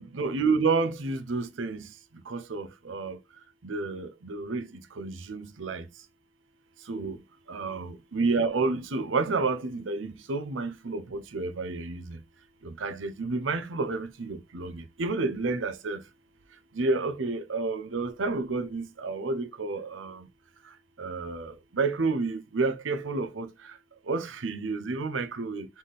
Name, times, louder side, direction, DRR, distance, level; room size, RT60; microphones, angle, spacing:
voice 1, 0.0-1.8 2.3-3.2 3.6-4.6 5.0-5.8 6.9-7.2 7.5-12.2 12.8-16.0 16.8-20.2 21.0-23.5 24.1-25.7, right 3 dB, 85° right, 0.7 m, -30 dB
4.0 x 3.6 x 3.4 m
head